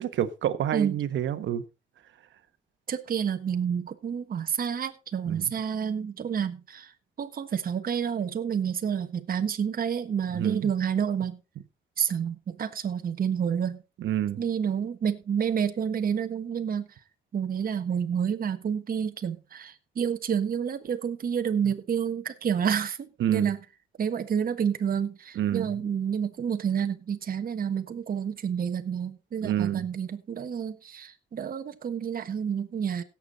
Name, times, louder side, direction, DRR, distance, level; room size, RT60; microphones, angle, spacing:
voice 1, 0.0-1.6 5.3-5.5 10.3-10.7 14.0-14.4 23.2-23.5 25.3-25.7 29.4-29.8, right 11 dB, 70° right, 1.3 m, -28 dB
voice 2, 2.9-6.9 7.2-11.4 12.0-13.8 14.4-16.9 17.3-23.6 24.0-33.0, right 7 dB, 45° right, 1.3 m, -29 dB
16.5 x 7.3 x 4.0 m
cardioid pair, 90°, 20 cm